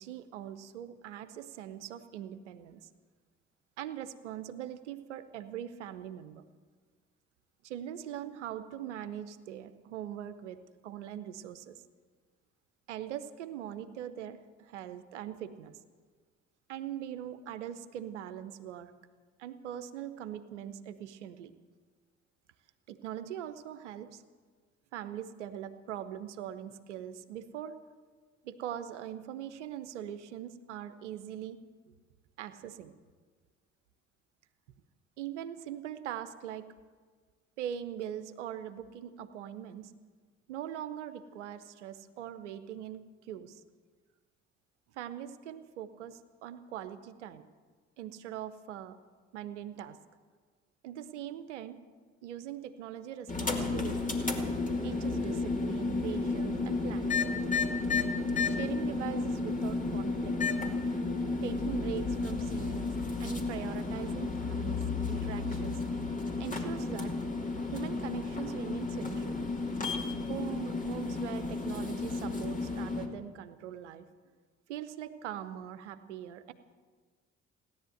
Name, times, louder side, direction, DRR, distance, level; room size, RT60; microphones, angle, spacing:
voice 1, 0.0-2.9 3.8-6.4 7.6-11.8 12.9-15.8 16.7-18.9 19.4-21.5 22.9-24.2 24.9-27.8 28.4-31.6 32.4-32.9 35.2-36.7 37.6-39.9 40.5-43.6 44.9-47.4 48.0-49.0 49.3-50.0 50.8-51.8 52.2-54.2 54.8-57.2 58.5-60.4 61.4-62.9 63.2-65.8 66.4-67.1 67.7-69.4 70.3-74.1 74.7-76.5, right 10 dB, 80° right, 12 dB, 0.8 m, -41 dB
sound 1, 53.3-73.1, left 3 dB, 20° left, 2.7 m, -32 dB
16.5 x 11.0 x 7.9 m, 1.5 s
figure-of-eight pair, 45°, 35 cm